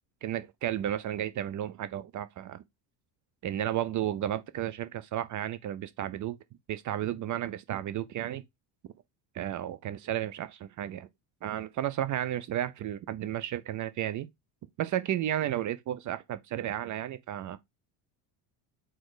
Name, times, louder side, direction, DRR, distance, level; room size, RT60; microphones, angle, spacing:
voice 1, 0.2-2.6 3.4-6.4 6.7-8.4 9.3-11.1 11.4-14.3 14.8-17.6, right 11 dB, 40° right, 0.5 m, -33 dB
4.5 x 4.4 x 4.8 m
cardioid pair, 120°, 45 cm